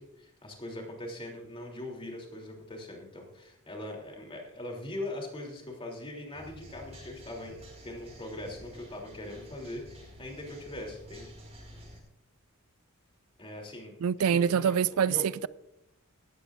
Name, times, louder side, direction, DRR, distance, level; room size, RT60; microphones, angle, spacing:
voice 1, 0.0-7.6 7.8-11.3 13.4-14.0 14.3-15.2, left 1 dB, 25° left, 3.2 m, -41 dB
sound 1, 6.3-12.0, equal, 30° right, 5.3 m, -50 dB
voice 2, 14.0-15.5, right 7 dB, 70° right, 0.3 m, -25 dB
17.5 x 14.5 x 2.6 m
head